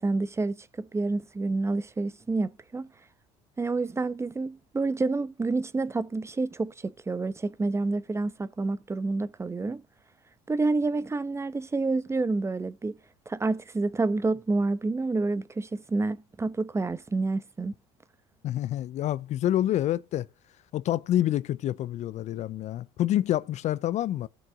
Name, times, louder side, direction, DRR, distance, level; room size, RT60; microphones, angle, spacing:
voice 1, 0.0-2.9 3.6-9.8 10.5-13.0 13.3-17.7, right 3 dB, 20° right, 0.8 m, -28 dB
voice 2, 18.4-20.3 20.7-24.3, left 12 dB, 55° left, 0.5 m, -27 dB
17.5 x 6.1 x 3.6 m
supercardioid pair, 80°, 15 cm